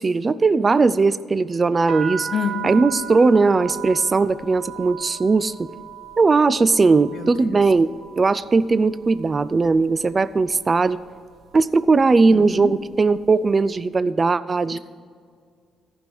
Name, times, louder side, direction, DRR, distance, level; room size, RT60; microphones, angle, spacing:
voice 1, 0.0-2.3 2.6-5.7 6.2-7.9 8.2-11.0 11.5-14.8, right 4 dB, 30° right, 17 dB, 0.3 m, -18 dB
sound 1, 1.8-9.7 10.0-10.7 11.3-11.6 11.9-13.3, right 7 dB, 45° right, 1.6 m, -36 dB
voice 2, 2.3-3.0 7.1-7.6 12.3-12.8 14.7-14.8, left 7 dB, 60° left, 9 dB, 0.8 m, -29 dB
14.5 x 5.3 x 6.3 m, 2.1 s
cardioid pair, 90°, 0 cm